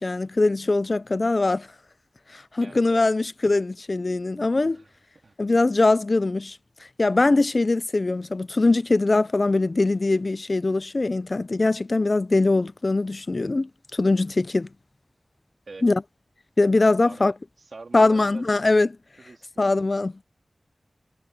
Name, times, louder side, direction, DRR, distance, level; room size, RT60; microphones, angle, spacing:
voice 1, 0.0-1.7 2.3-4.8 5.4-6.6 7.0-14.7 15.8-16.0 16.6-17.3 17.9-18.9 19.6-20.2, left 2 dB, 55° left, 0.6 m, -22 dB
voice 2, 2.6-3.1 4.5-4.9 5.2-5.3 15.7-15.9 17.0-18.6 19.2-19.7, right 3 dB, 75° right, 2.5 m, -45 dB
wide cardioid pair, 55°, 0 cm